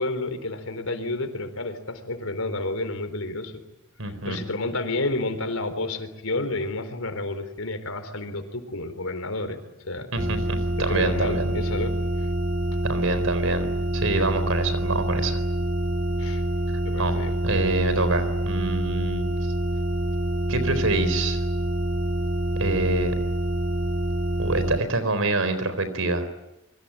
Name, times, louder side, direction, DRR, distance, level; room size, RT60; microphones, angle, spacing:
voice 1, 0.0-3.5 4.1-9.6 9.8-10.1 10.8-12.3 16.2-16.4 16.8-17.3, left 2 dB, 85° left, 9 dB, 4.1 m, -30 dB
voice 2, 4.0-4.4 10.1-11.6 12.8-15.4 17.0-17.2 17.4-19.3 20.5-21.4 22.6-23.1 24.4-26.3, right 2 dB, 75° right, 12 dB, 4.2 m, -26 dB
sound 1, 10.2-24.8, right 1 dB, 45° right, 1.8 m, -26 dB
26.0 x 24.0 x 8.9 m, 0.92 s
head